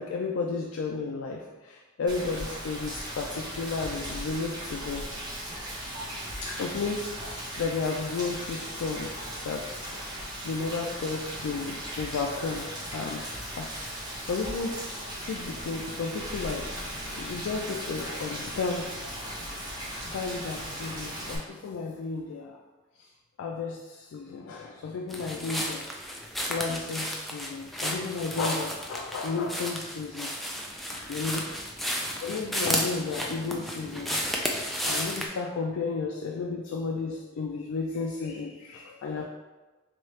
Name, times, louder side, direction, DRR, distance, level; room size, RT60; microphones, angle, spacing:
voice 1, 0.0-5.0 6.4-9.8 10.4-14.8 15.1-16.9 17.2-18.9 20.1-22.6 23.0-23.1 23.4-25.8 26.5-30.3 30.9-31.5 32.2-34.2 34.8-39.3, left 4 dB, 85° left, 0 dB, 0.4 m, -33 dB
Rain, 2.1-21.4, equal, 20° right, 0.9 m, -37 dB
sound 1, 25.1-35.3, equal, ahead, 0.3 m, -33 dB
3.7 x 3.0 x 3.1 m, 1.2 s
head